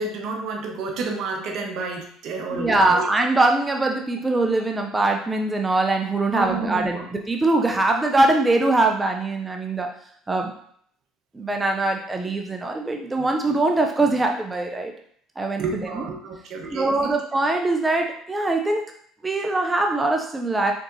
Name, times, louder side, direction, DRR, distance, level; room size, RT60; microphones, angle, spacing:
voice 1, 0.0-3.1 6.3-7.1 15.6-17.1, right 3 dB, 65° right, 2 dB, 1.0 m, -30 dB
voice 2, 2.5-9.9 10.3-10.5 11.3-14.9 15.4-16.0 16.7-18.8 19.2-20.7, right 2 dB, 15° right, 3 dB, 0.5 m, -22 dB
4.5 x 3.9 x 2.7 m, 0.63 s
supercardioid pair, 100°, 0 cm